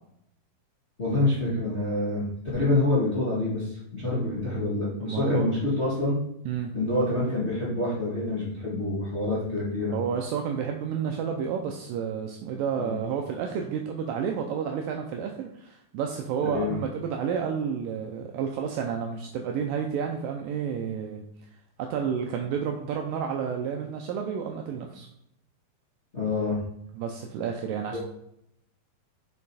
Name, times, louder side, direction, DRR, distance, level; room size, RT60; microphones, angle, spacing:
voice 1, 1.0-2.2 2.5-6.1 6.7-9.9 12.8-12.9 16.4-16.7 26.1-26.6 27.9-28.0, left 2 dB, 65° left, -8 dB, 0.6 m, -26 dB
voice 2, 5.0-5.5 6.5-6.7 9.9-21.2 21.8-25.1 27.0-28.0, right 7 dB, 80° right, 3 dB, 2.0 m, -30 dB
6.6 x 5.0 x 4.2 m, 0.77 s
omnidirectional pair, 4.4 m